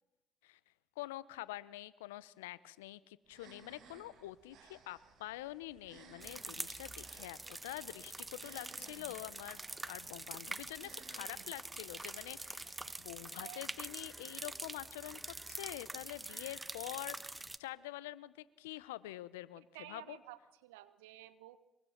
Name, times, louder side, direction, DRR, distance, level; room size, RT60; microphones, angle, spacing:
voice 1, 1.0-20.2, left 16 dB, 85° left, 19 dB, 0.8 m, -46 dB
sound 1, 3.3-13.2, right 5 dB, 65° right, 6.0 m, -61 dB
sound 2, 6.2-17.6, right 2 dB, 20° right, 1.3 m, -45 dB
voice 2, 19.7-21.6, right 15 dB, 85° right, 13 dB, 1.4 m, -52 dB
24.0 x 23.5 x 5.9 m, 0.96 s
hypercardioid pair, 50°, 0 cm